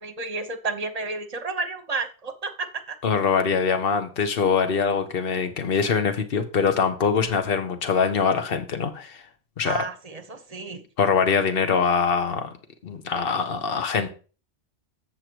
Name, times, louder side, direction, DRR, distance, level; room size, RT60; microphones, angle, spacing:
voice 1, 0.0-3.0 9.6-10.8, right 3 dB, 35° right, 7 dB, 1.0 m, -31 dB
voice 2, 3.0-9.2 9.6-9.8 11.0-12.5 12.8-14.1, left 6 dB, 55° left, 7 dB, 1.3 m, -23 dB
8.0 x 6.6 x 4.6 m, 0.36 s
omnidirectional pair, 1.2 m